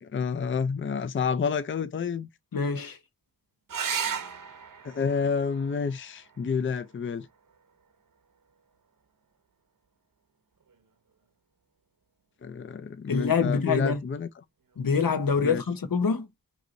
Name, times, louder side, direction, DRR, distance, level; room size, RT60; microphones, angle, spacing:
voice 1, 0.0-2.3 4.8-7.3 12.4-14.4 15.4-15.6, left 6 dB, 35° left, 0.4 m, -29 dB
voice 2, 2.5-3.0 13.1-14.0 14.8-16.2, left 5 dB, 90° left, 0.9 m, -25 dB
sound 1, 3.7-8.7 10.6-11.2 14.7-14.8 15.1-15.2, right 7 dB, 75° right, 0.9 m, -37 dB
4.7 x 2.7 x 3.8 m
wide cardioid pair, 65°, 33 cm